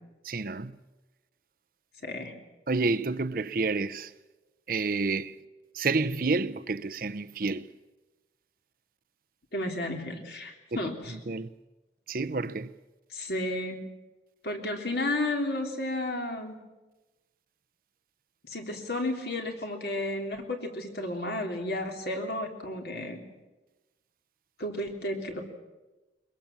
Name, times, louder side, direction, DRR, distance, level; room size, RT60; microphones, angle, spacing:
voice 1, 0.2-0.7 2.7-4.1 4.7-5.3 5.7-7.7 10.7-10.8 11.3-11.5 12.1-12.7, right 3 dB, 50° right, 0.7 m, -29 dB
voice 2, 2.0-2.3 9.5-11.2 13.1-13.8 14.4-16.6 18.5-23.2 24.6-25.4, left 1 dB, 65° left, 3.4 m, -32 dB
22.5 x 22.0 x 7.4 m
head